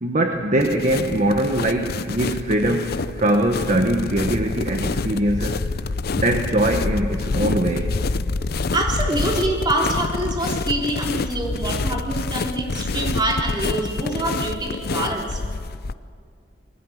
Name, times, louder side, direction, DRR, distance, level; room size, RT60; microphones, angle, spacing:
voice 1, 0.0-5.7 6.2-7.9, right 1 dB, 40° right, 4 dB, 1.2 m, -22 dB
sound 1, 0.6-15.9, left 3 dB, 55° left, 0.6 m, -27 dB
voice 2, 8.7-15.4, right 1 dB, 25° right, 0 dB, 3.5 m, -25 dB
21.5 x 16.5 x 9.2 m, 2.1 s
head